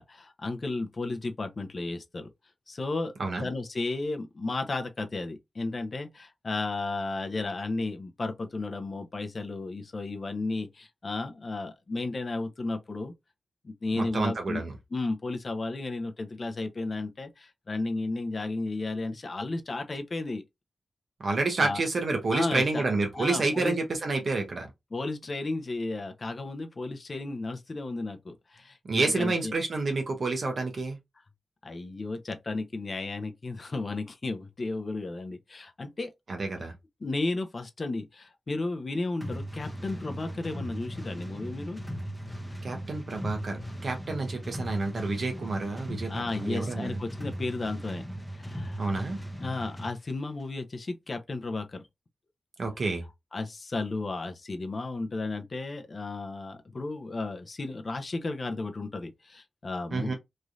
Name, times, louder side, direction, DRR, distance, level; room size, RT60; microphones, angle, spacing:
voice 1, 0.0-2.3 2.7-3.1 3.4-13.1 13.6-14.6 14.9-20.4 21.6-21.8 22.3-22.8 23.1-23.8 24.9-29.5 31.6-36.1 37.0-41.8 46.1-48.0 48.3-48.8 49.4-51.8 53.3-60.1, left 2 dB, 40° left, 0.6 m, -33 dB
voice 2, 14.0-14.7 21.2-24.7 28.9-31.0 36.3-36.7 42.6-47.0 48.8-49.2 52.6-53.0 59.9-60.1, right 3 dB, 55° right, 0.7 m, -29 dB
sound 1, 39.2-50.0, equal, 5° left, 0.7 m, -38 dB
3.1 x 2.6 x 2.4 m
wide cardioid pair, 115°, 0 cm